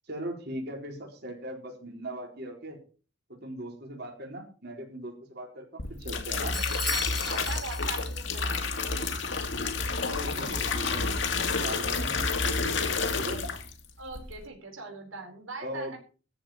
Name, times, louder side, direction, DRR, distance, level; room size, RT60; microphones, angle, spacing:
voice 1, 0.1-2.8 3.3-6.6 10.1-13.4 15.6-16.0, right 1 dB, 50° right, -1 dB, 4.5 m, -39 dB
sound 1, 5.8-13.8 14.1-14.5, left 4 dB, 60° left, 2.2 m, -30 dB
Bell / Doorbell, 6.5-8.2, right 1 dB, ahead, 0.8 m, -37 dB
voice 2, 7.2-9.2 14.0-16.0, right 3 dB, 80° right, 2 dB, 4.5 m, -42 dB
14.0 x 5.4 x 9.5 m, 0.37 s
head